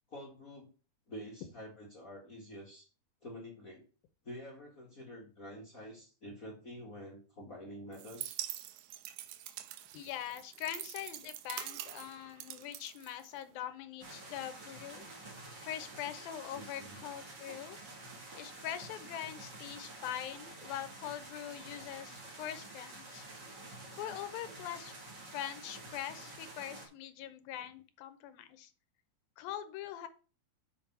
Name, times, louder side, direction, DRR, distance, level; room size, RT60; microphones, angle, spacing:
voice 1, 0.1-0.7 1.1-2.9 3.2-3.8 4.2-8.4 12.5-12.6 16.5-17.0, equal, 40° left, -2 dB, 1.2 m, -48 dB
sound 1, 7.9-13.6, right 13 dB, 80° right, 2.4 m, -45 dB
voice 2, 9.9-15.1 15.6-17.8 18.3-23.3 24.0-25.0 25.3-28.7 29.4-30.1, left 11 dB, 75° left, 10 dB, 2.4 m, -43 dB
sound 2, 14.0-26.9, right 2 dB, 30° right, 2.4 m, -49 dB
7.0 x 5.4 x 6.0 m, 0.37 s
omnidirectional pair, 4.6 m